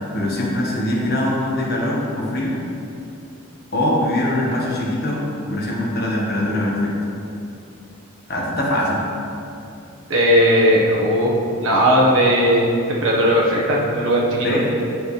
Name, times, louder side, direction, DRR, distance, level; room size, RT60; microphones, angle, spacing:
voice 1, 0.1-2.6 3.7-6.9 8.3-9.0 14.4-14.6, left 1 dB, 45° left, -4 dB, 1.4 m, -22 dB
voice 2, 10.1-11.3 11.6-14.5, equal, 65° right, -4 dB, 1.4 m, -17 dB
9.7 x 6.1 x 3.3 m, 2.7 s
head